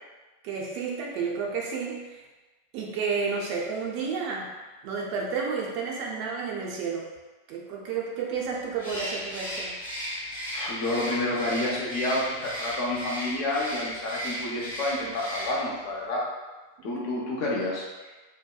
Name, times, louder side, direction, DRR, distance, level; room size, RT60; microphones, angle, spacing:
voice 1, 0.4-2.2 2.7-4.5 4.8-7.1 7.5-9.8 16.9-17.1, right 5 dB, 45° right, -2 dB, 0.4 m, -31 dB
Bird, 8.8-15.8, equal, 85° left, 1.2 m, -35 dB
voice 2, 10.5-16.3 16.8-17.9, left 2 dB, 45° left, -4 dB, 0.6 m, -29 dB
2.7 x 2.2 x 2.3 m, 1.2 s
figure-of-eight pair, 90°, 0 cm